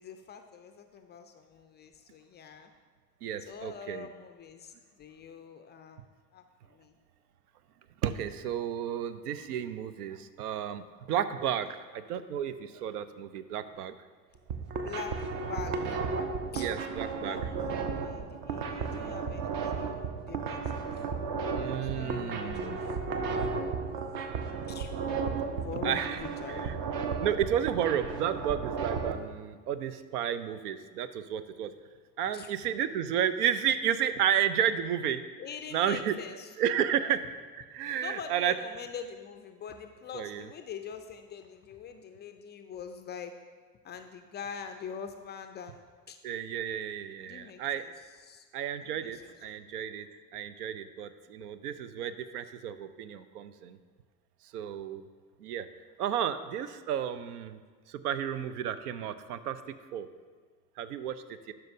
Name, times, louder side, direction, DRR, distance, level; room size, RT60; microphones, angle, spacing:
voice 1, 0.0-2.7 3.5-7.0 14.8-16.0 16.5-16.7 17.2-20.9 21.6-24.0 24.7-24.9 25.5-26.9 32.3-32.5 35.4-36.5 37.0-37.2 38.0-43.3 43.8-46.2 47.2-48.5 48.8-49.5, left 7 dB, 25° left, 7 dB, 0.3 m, -44 dB
voice 2, 3.2-4.1 8.0-13.9 16.5-17.4 21.5-22.8 25.8-26.2 26.6-26.8 27.2-31.7 32.2-35.2 35.7-36.1 36.6-37.2 37.6-38.5 40.1-40.5 46.2-47.8 48.5-50.1 50.3-53.8 54.5-55.0 55.4-55.7 56.0-57.6 57.9-60.1 60.8-61.5, right 9 dB, 75° right, 12 dB, 0.5 m, -32 dB
sound 1, 14.4-29.1, right 5 dB, 45° right, 0.8 m, -34 dB
11.5 x 5.6 x 2.6 m, 1.5 s
figure-of-eight pair, 60°, 47 cm